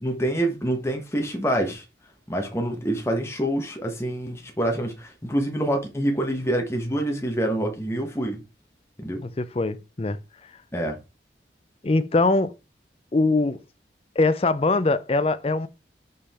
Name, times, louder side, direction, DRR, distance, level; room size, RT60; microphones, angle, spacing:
voice 1, 0.0-1.8 2.3-8.4 9.0-9.2 10.7-11.0, right 1 dB, 15° left, 1.2 m, -26 dB
voice 2, 9.2-10.2 11.8-12.5 13.1-13.6 14.2-15.7, left 3 dB, 30° left, 0.5 m, -22 dB
5.5 x 5.0 x 4.2 m
head